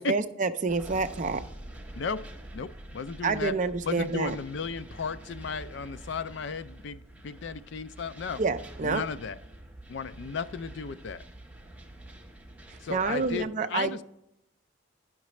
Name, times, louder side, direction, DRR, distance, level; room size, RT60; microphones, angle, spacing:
voice 1, 0.0-1.4 3.2-4.4 8.4-9.0 12.7-13.9, right 4 dB, 35° right, 10 dB, 0.4 m, -28 dB
sound 1, 0.7-13.4, right 1 dB, 5° right, 0.8 m, -46 dB
voice 2, 2.5-3.6 3.8-8.4 8.8-9.4 9.9-11.2 12.8-14.0, left 5 dB, 55° left, 14 dB, 0.4 m, -35 dB
10.0 x 5.9 x 3.1 m, 0.80 s
head